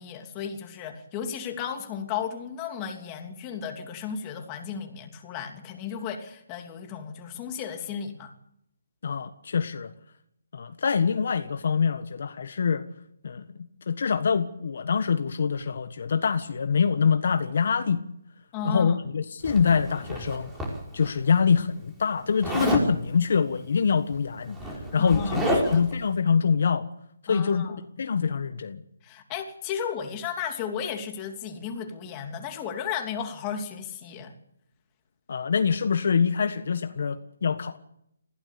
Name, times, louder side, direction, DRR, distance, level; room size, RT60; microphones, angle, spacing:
voice 1, 0.0-8.3 18.5-19.0 25.0-25.8 27.3-27.8 29.0-34.3, left 7 dB, 20° left, 4 dB, 3.0 m, -34 dB
voice 2, 9.0-9.9 10.5-12.9 13.2-13.4 13.9-18.0 18.6-20.5 20.9-26.9 27.2-28.8 35.3-37.8, left 6 dB, 60° left, 9 dB, 1.5 m, -25 dB
Zipper (clothing), 19.4-21.1 22.4-22.9 24.0-24.1 24.4-25.9, right 1 dB, 10° right, 5.2 m, -29 dB
21.5 x 16.0 x 8.5 m, 0.75 s
hypercardioid pair, 160°, 0 cm